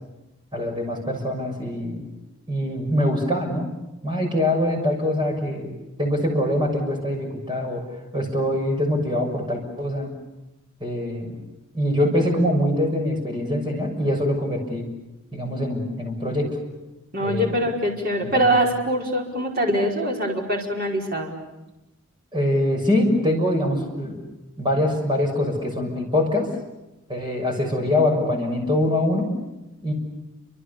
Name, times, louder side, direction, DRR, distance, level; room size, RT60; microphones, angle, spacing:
voice 1, 0.5-2.0 2.5-3.8 4.0-7.8 8.1-10.1 10.8-11.4 11.7-14.8 15.3-16.5 17.2-17.6 18.2-18.4 22.3-24.2 24.6-26.5 27.1-29.3 29.8-29.9, left 1 dB, 20° right, 1 dB, 6.7 m, -23 dB
voice 2, 17.1-21.3, right 1 dB, 40° right, -1 dB, 5.2 m, -23 dB
29.5 x 26.0 x 7.1 m, 0.98 s
head